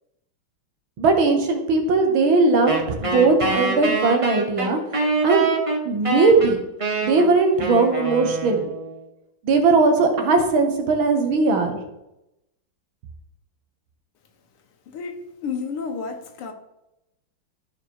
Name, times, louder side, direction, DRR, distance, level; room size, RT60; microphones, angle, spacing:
voice 1, 1.0-4.8 5.2-5.5 5.9-6.6 7.0-8.7 9.4-11.8, right 3 dB, 70° right, 2.1 m, -19 dB
Wind instrument woodwind instrument, 2.7-9.0, right 2 dB, 20° right, 1.2 m, -25 dB
voice 2, 14.9-16.5, left 5 dB, 85° left, 2.1 m, -31 dB
12.5 x 4.8 x 4.7 m
omnidirectional pair, 2.4 m